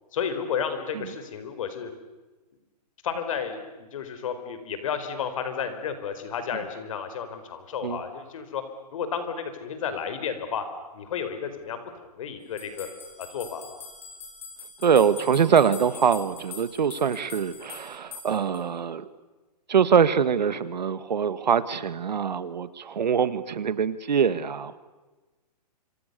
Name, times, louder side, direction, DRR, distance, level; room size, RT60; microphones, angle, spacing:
voice 1, 0.1-1.9 3.0-8.6 8.9-10.6 10.9-12.9 13.2-13.8, left 7 dB, 50° left, 9 dB, 4.7 m, -32 dB
sound 1, 12.6-18.6, left 5 dB, 10° left, 4.6 m, -43 dB
voice 2, 14.8-19.1 19.7-24.8, right 7 dB, 90° right, 14 dB, 2.0 m, -23 dB
29.0 x 26.5 x 6.9 m, 1.2 s
hypercardioid pair, 165°, 21 cm